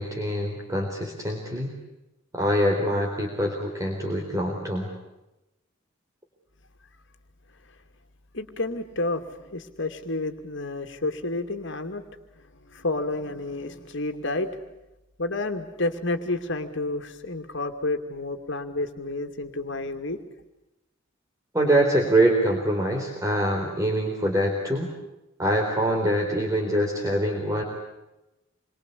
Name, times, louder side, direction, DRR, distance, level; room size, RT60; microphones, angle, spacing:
voice 1, 0.0-1.7 2.3-4.9 21.5-24.9 25.4-27.6, right 1 dB, 15° right, 0 dB, 4.1 m, -24 dB
voice 2, 8.3-12.0 12.4-14.5 15.2-20.2, left 2 dB, 65° left, 6 dB, 2.6 m, -30 dB
28.0 x 24.0 x 8.5 m, 0.96 s
head